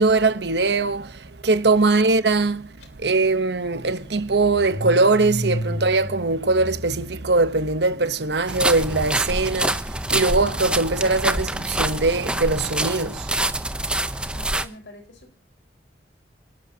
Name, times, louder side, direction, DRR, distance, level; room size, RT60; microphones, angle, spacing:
voice 1, 0.0-2.7 3.0-13.3 14.1-14.2, right 3 dB, 75° right, 1.0 m, -21 dB
Car / Engine starting, 2.8-2.9 3.2-8.4, equal, 70° left, 3.0 m, -33 dB
sound 1, 8.5-14.7, right 1 dB, 5° right, 0.7 m, -26 dB
voice 2, 14.3-15.3, left 1 dB, 85° left, 4.9 m, -45 dB
28.5 x 12.5 x 2.9 m
head